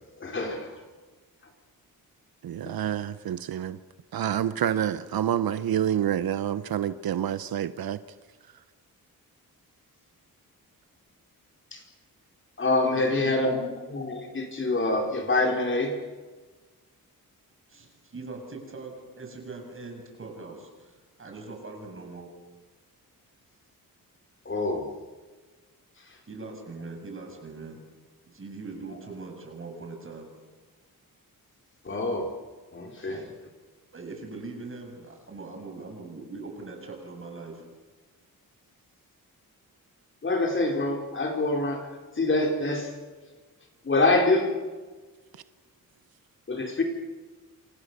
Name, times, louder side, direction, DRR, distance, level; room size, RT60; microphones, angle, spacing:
voice 1, 0.2-0.8 11.7-11.8 12.6-13.6 13.9-15.9 24.4-24.9 31.8-32.3 32.7-33.2 40.2-41.9 42.2-42.9 43.8-44.5 46.5-46.8, left 2 dB, 35° left, 2 dB, 4.4 m, -25 dB
voice 2, 2.4-3.8 4.1-8.0, right 10 dB, 85° right, 13 dB, 1.1 m, -28 dB
voice 3, 12.9-13.8 17.7-22.3 26.3-27.8 28.2-30.3 33.0-33.3 33.9-37.6, right 3 dB, 35° right, 2 dB, 7.4 m, -41 dB
28.5 x 27.0 x 6.9 m, 1.4 s
wide cardioid pair, 145°, 35 cm